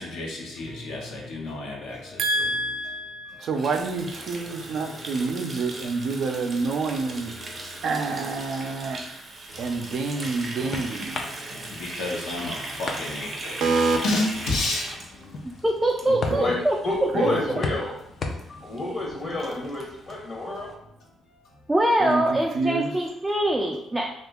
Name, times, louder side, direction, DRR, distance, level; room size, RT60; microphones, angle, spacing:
voice 1, 0.0-2.2 3.3-3.4 7.5-7.7 9.5-9.8 10.6-10.7 11.5-13.7 14.0-15.4 18.5-18.7, left 2 dB, 80° left, -2 dB, 0.9 m, -31 dB
voice 2, 2.2-7.3 7.8-9.0 9.6-11.2 13.6-14.0 16.1-16.5 17.1-17.4 22.0-22.9, right 3 dB, 70° right, 5 dB, 0.5 m, -27 dB
Water tap faucet, 3.5-16.5 16.8-17.1 17.4-17.7 18.0-18.1 18.3-18.4 18.8-18.9 19.1-20.1, right 2 dB, 40° right, 0.7 m, -38 dB
sound 1, 9.9-20.8, left 3 dB, 50° left, 0.4 m, -39 dB
voice 3, 15.4-16.8 17.0-17.3 21.7-24.1, right 1 dB, 10° right, 0 dB, 0.4 m, -23 dB
voice 4, 16.8-17.9 18.6-20.7, left 2 dB, 35° left, -2 dB, 0.8 m, -28 dB
2.9 x 2.5 x 3.5 m, 0.79 s
cardioid pair, 90°, 0 cm